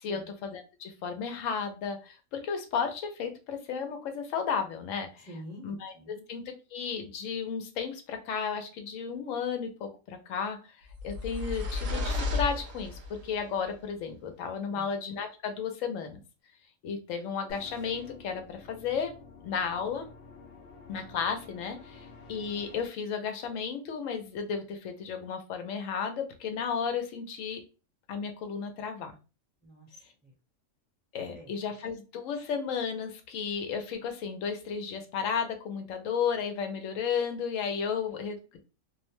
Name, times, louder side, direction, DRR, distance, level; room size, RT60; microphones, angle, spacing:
voice 1, 0.0-5.3 5.6-5.9 6.3-10.6 11.0-16.2 16.8-19.1 19.4-20.1 20.9-27.6 28.1-29.1 31.1-38.6, left 6 dB, 85° left, 6 dB, 1.0 m, -33 dB
voice 2, 5.3-6.2 14.7-14.9 29.6-30.3 31.3-31.5, equal, 10° right, -2 dB, 0.6 m, -47 dB
sound 1, 10.9-13.3, left 3 dB, 60° right, 0.7 m, -33 dB
sound 2, 17.5-22.9, left 4 dB, 60° left, 0.7 m, -50 dB
2.5 x 2.1 x 2.9 m, 0.32 s
omnidirectional pair, 1.3 m